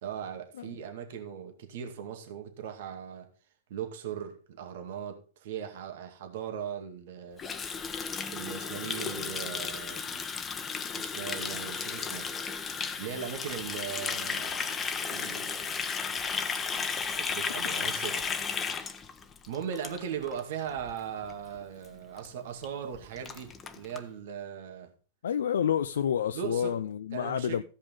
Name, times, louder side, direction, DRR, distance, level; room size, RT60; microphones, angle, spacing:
voice 1, 0.0-3.3 3.7-7.4 8.3-10.2 10.9-12.3 13.0-14.7 15.1-15.7 17.0-18.4 19.5-24.9 26.3-26.8 27.1-27.6, right 8 dB, 65° right, 2.2 m, -39 dB
Water tap faucet, 7.4-20.4 20.7-20.9 21.2-21.6 21.8-21.9 22.2-22.3 22.6-22.7 22.9-24.0, left 5 dB, 20° left, 1.1 m, -34 dB
voice 2, 25.2-27.6, left 9 dB, 80° left, 0.5 m, -29 dB
15.0 x 5.4 x 5.3 m
hypercardioid pair, 110°, 0 cm